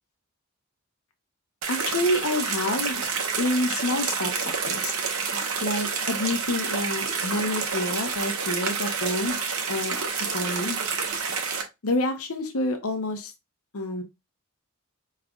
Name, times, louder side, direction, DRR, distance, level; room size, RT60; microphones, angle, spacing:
sound 1, 1.6-11.6, right 5 dB, 80° right, 1.0 m, -28 dB
voice 1, 1.7-3.0 3.4-4.9 5.6-9.4 9.7-10.0 10.3-10.8 11.8-13.3 13.7-14.0, left 1 dB, 80° left, 0.8 m, -28 dB
4.9 x 3.2 x 2.3 m
head